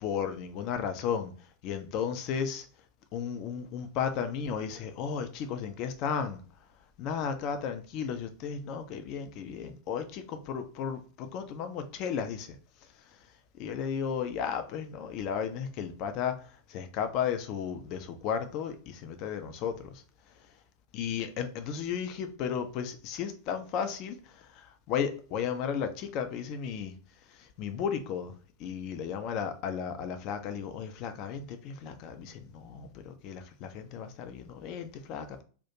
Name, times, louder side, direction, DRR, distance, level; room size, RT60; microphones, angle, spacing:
voice 1, 0.0-1.3 1.6-2.7 3.1-6.4 7.0-12.6 13.6-16.4 16.7-19.9 20.9-26.9 27.6-28.3 28.6-35.4, left 7 dB, 40° left, 8 dB, 0.4 m, -34 dB
2.4 x 2.1 x 2.8 m, 0.40 s
figure-of-eight pair, 90°, 0 cm